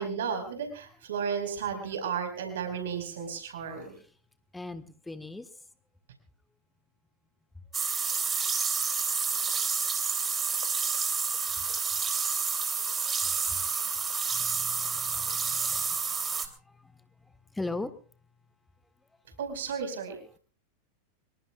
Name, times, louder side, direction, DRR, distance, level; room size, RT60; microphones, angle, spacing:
voice 1, 0.0-3.9 19.4-20.2, right 6 dB, 60° right, 4.9 m, -33 dB
voice 2, 4.5-5.5 14.3-15.8 17.5-17.9, left 2 dB, 5° left, 1.5 m, -38 dB
sound 1, 7.7-16.5, right 5 dB, 20° right, 3.1 m, -29 dB
25.5 x 23.0 x 2.4 m
figure-of-eight pair, 90°, 0 cm